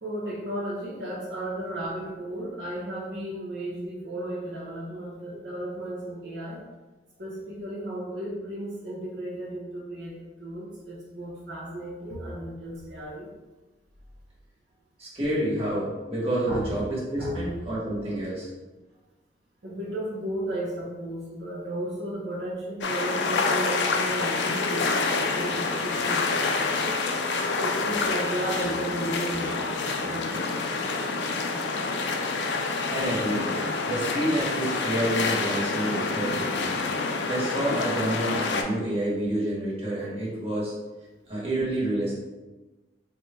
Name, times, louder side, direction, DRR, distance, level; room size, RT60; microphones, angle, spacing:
voice 1, 0.0-6.6 7.2-13.3 16.5-16.7 17.2-17.4 19.6-26.8 27.6-30.6, right 1 dB, 70° right, -6 dB, 0.8 m, -34 dB
voice 2, 15.0-18.5 32.9-33.5 33.9-36.7 37.3-40.7 41.3-42.1, right 1 dB, 35° right, -7 dB, 1.3 m, -28 dB
sound 1, 22.8-38.6, left 4 dB, 75° left, 0.4 m, -27 dB
3.4 x 2.2 x 4.2 m, 1.2 s
head